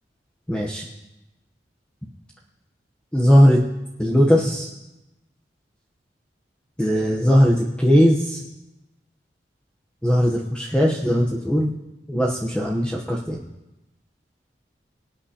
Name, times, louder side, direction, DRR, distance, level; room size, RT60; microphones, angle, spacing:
voice 1, 0.5-0.8 3.1-3.6 4.0-4.7 6.8-8.4 10.0-11.7 12.1-13.4, equal, 5° left, -3 dB, 0.9 m, -18 dB
24.0 x 8.8 x 2.9 m, 0.99 s
head